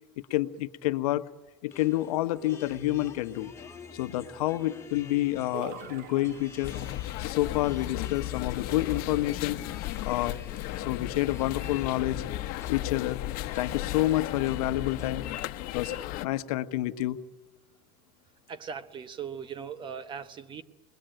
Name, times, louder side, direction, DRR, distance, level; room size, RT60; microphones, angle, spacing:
voice 1, 0.3-1.3 1.6-3.5 3.9-6.7 7.2-9.6 10.0-10.4 10.8-12.2 12.7-15.2 15.7-15.9 16.2-17.2, left 15 dB, 75° left, 11 dB, 1.2 m, -28 dB
sound 1, 1.7-15.1, left 5 dB, 15° left, 2.2 m, -49 dB
sound 2, 5.5-7.1, right 7 dB, 50° right, 1.6 m, -44 dB
sound 3, 6.6-16.3, left 15 dB, 50° left, 1.3 m, -35 dB
voice 2, 18.5-20.6, right 7 dB, 25° right, 14 dB, 1.1 m, -39 dB
29.0 x 21.5 x 9.1 m, 1.1 s
supercardioid pair, 135°, 19 cm